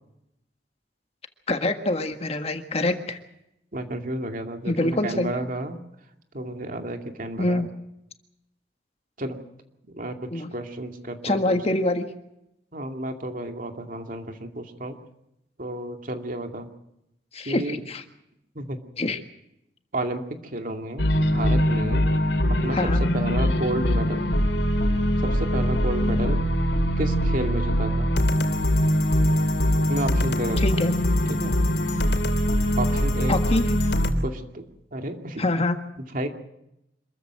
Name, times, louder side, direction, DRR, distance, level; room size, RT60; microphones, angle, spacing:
voice 1, 1.5-3.2 4.7-5.3 7.4-7.7 10.3-10.5 11.2-12.1 17.3-18.0 19.0-19.2 22.7-23.0 30.6-30.9 33.3-33.6 35.4-35.8, left 2 dB, 35° left, 7 dB, 1.6 m, -25 dB
voice 2, 3.7-5.8 6.3-7.6 9.2-9.4 9.9-11.6 12.7-15.0 15.6-16.7 17.5-17.8 18.6-18.8 19.9-22.0 22.6-22.8 23.1-24.2 25.2-26.4 27.0-28.1 29.9-30.8 31.3-31.6 32.8-33.4 34.2-35.4 36.0-36.3, right 1 dB, 50° right, 5 dB, 2.4 m, -31 dB
sound 1, 21.0-34.1, equal, 80° left, 3.3 m, -22 dB
26.5 x 14.5 x 7.7 m, 0.84 s
head